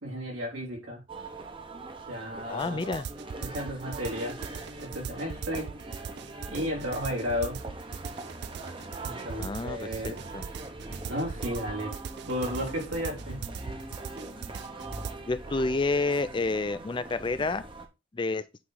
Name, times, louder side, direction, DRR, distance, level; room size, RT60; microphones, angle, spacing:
voice 1, 0.0-1.0 2.1-3.0 3.4-4.4 4.8-5.8 6.5-7.6 9.0-10.2 11.1-13.5, equal, 90° right, 3.3 m, -33 dB
sound 1, 1.1-17.9, right 2 dB, 25° right, 0.8 m, -42 dB
voice 2, 2.5-3.1 9.4-10.4 15.3-17.6 18.1-18.4, left 3 dB, 25° left, 0.4 m, -29 dB
sound 2, 2.6-15.1, right 6 dB, 55° right, 0.4 m, -40 dB
8.7 x 3.2 x 3.8 m
head